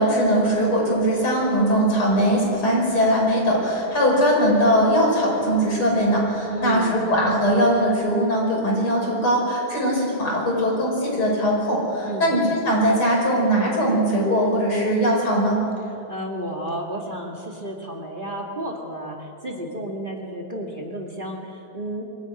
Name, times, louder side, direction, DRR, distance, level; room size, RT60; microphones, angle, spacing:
voice 1, 0.0-15.6, equal, 90° left, -2 dB, 6.7 m, -20 dB
voice 2, 6.5-7.1 12.0-12.4 16.1-22.0, right 1 dB, 25° right, -1 dB, 2.2 m, -32 dB
24.0 x 13.0 x 9.5 m, 2.6 s
omnidirectional pair, 2.3 m